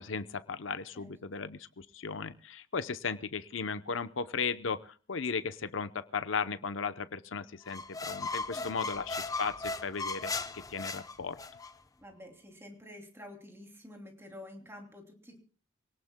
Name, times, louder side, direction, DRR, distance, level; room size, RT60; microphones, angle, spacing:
voice 1, 0.0-11.4, left 5 dB, 80° left, 13 dB, 0.7 m, -36 dB
voice 2, 0.9-1.5 8.5-8.7 12.0-15.4, left 1 dB, 15° right, 2 dB, 2.9 m, -50 dB
sound 1, 7.7-11.7, left 3 dB, 20° left, 0.7 m, -37 dB
25.5 x 18.0 x 2.2 m, 0.36 s
head